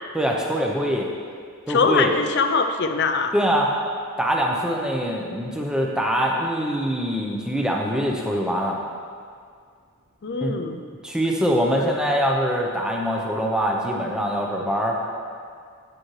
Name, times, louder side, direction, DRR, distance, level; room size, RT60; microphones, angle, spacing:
voice 1, 0.1-1.1 1.7-2.1 3.3-3.7 4.2-8.8 10.4-10.5 11.0-15.1, equal, 5° right, -1 dB, 0.7 m, -23 dB
voice 2, 1.7-3.3 10.2-10.8 11.8-11.9, left 4 dB, 50° left, 7 dB, 0.5 m, -22 dB
9.0 x 8.8 x 3.2 m, 2.2 s
head